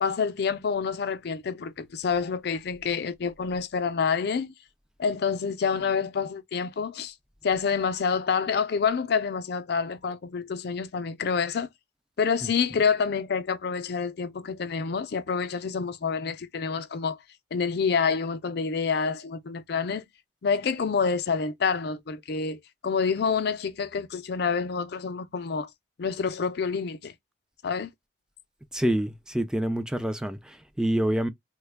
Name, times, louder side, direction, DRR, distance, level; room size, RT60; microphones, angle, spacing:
voice 1, 0.0-4.5 5.0-7.1 7.4-11.7 12.2-17.2 17.5-20.0 20.4-25.7 26.0-27.1 27.6-27.9, left 5 dB, 60° left, 0.4 m, -27 dB
voice 2, 28.7-31.3, right 1 dB, 5° right, 0.3 m, -27 dB
3.1 x 2.2 x 3.3 m
head